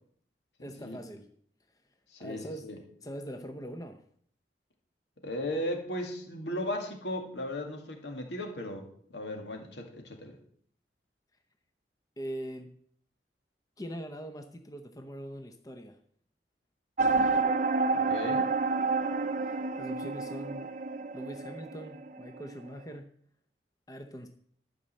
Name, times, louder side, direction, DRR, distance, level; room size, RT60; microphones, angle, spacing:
voice 1, 0.6-1.3 2.2-2.7 3.0-4.0 12.2-12.7 13.8-16.0 19.4-20.7 21.1-23.1 23.9-24.3, equal, 20° left, 6 dB, 0.7 m, -42 dB
voice 2, 2.1-2.8 5.2-8.9 9.1-10.4 17.9-18.5, left 1 dB, 80° left, 3 dB, 2.1 m, -36 dB
sound 1, 17.0-22.5, right 4 dB, 45° right, 0.5 m, -29 dB
12.0 x 5.4 x 7.6 m, 0.62 s
head